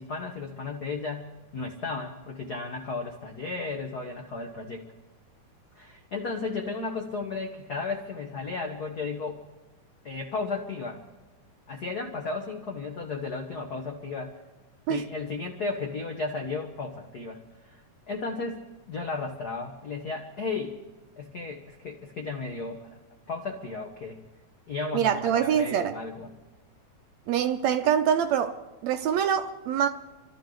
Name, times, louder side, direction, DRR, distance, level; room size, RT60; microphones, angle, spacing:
voice 1, 0.0-4.8 5.7-9.4 10.0-11.0 11.7-14.4 14.9-17.8 18.1-20.8 21.2-22.9 23.3-24.2 24.7-26.3, left 4 dB, 70° left, 0.9 m, -34 dB
voice 2, 24.9-25.9 27.3-28.6 28.8-29.9, right 8 dB, 75° right, 1.7 m, -24 dB
28.0 x 13.0 x 3.9 m
omnidirectional pair, 3.7 m